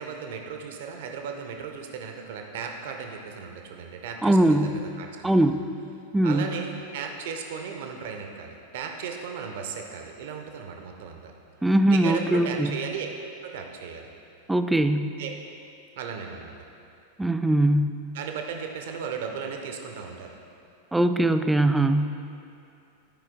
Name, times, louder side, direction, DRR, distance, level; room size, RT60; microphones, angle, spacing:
voice 1, 0.0-5.3 6.2-11.3 11.9-13.1 13.4-14.1 15.2-15.3 16.0-16.6 18.1-20.3, right 6 dB, 55° right, 3 dB, 0.8 m, -36 dB
voice 2, 4.2-4.7 5.2-5.6 6.1-6.4 11.6-12.8 14.5-15.1 17.2-17.9 20.9-22.1, right 1 dB, 5° right, 9 dB, 0.3 m, -21 dB
12.0 x 5.0 x 3.7 m, 2.6 s
figure-of-eight pair, 90°, 0 cm